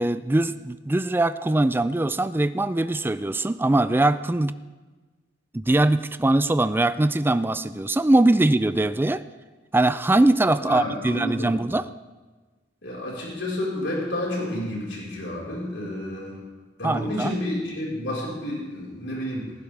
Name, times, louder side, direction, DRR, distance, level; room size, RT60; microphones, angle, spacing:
voice 1, 0.0-4.6 5.5-9.2 9.7-11.8 16.8-17.3, right 2 dB, 10° right, 13 dB, 0.4 m, -22 dB
voice 2, 10.6-11.6 12.8-16.4 16.8-19.5, left 1 dB, 80° left, -4 dB, 4.6 m, -30 dB
18.5 x 15.0 x 3.4 m, 1.3 s
head